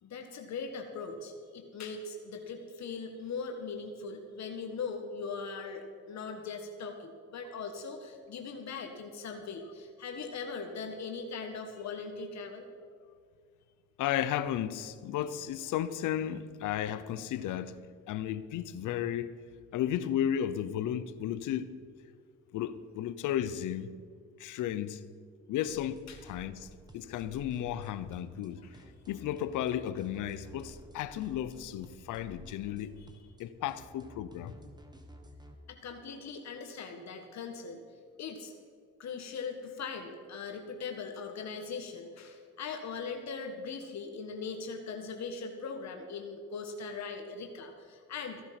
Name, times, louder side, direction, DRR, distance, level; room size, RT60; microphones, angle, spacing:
voice 1, 0.0-12.7 26.1-26.2 28.6-28.7 35.7-37.8 38.2-38.5 39.0-48.5, left 5 dB, 65° left, 1.6 m, -40 dB
voice 2, 14.0-17.8 18.1-19.3 19.7-21.8 22.5-23.9 24.4-25.1 25.5-28.6 29.1-33.0 33.4-34.6, left 10 dB, 85° left, 0.8 m, -34 dB
sound 1, 25.7-35.5, right 1 dB, 15° right, 1.8 m, -53 dB
15.5 x 11.0 x 6.0 m
cardioid pair, 90°, 30 cm